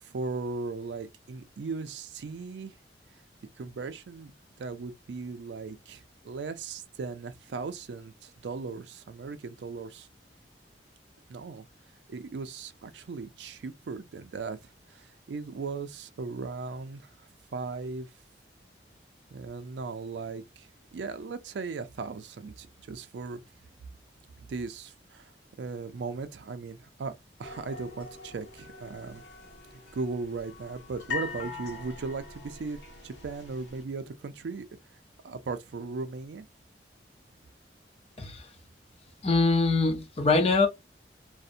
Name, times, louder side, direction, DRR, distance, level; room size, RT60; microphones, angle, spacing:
voice 1, 0.0-2.8 3.6-4.3 4.6-10.1 11.3-11.7 12.1-17.1 17.5-18.1 19.3-23.4 24.4-25.3 25.6-27.1 27.4-29.2 29.9-34.7 35.2-36.5, right 4 dB, 75° right, 0.4 m, -37 dB
sound 1, 27.4-33.8, left 4 dB, 90° left, 0.8 m, -42 dB
voice 2, 38.2-38.5 39.2-40.7, left 3 dB, 35° left, 0.6 m, -23 dB
2.6 x 2.0 x 2.5 m
head